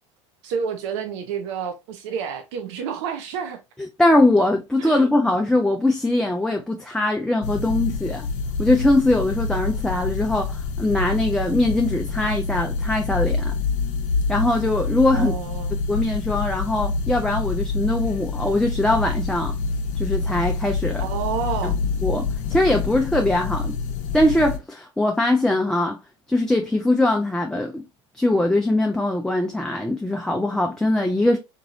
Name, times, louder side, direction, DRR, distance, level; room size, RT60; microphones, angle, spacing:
voice 1, 0.4-3.6 4.8-5.0 15.1-15.8 21.0-21.8, right 7 dB, 65° right, 0.7 m, -29 dB
voice 2, 3.8-8.3 8.6-13.5 14.3-15.3 15.9-19.5 20.0-21.1 22.0-23.8 24.1-26.0 26.3-27.8 28.1-31.4, left 2 dB, 5° left, 0.4 m, -21 dB
sound 1, 7.4-24.6, left 4 dB, 55° left, 0.6 m, -27 dB
3.0 x 2.6 x 2.5 m
hypercardioid pair, 85°, 16 cm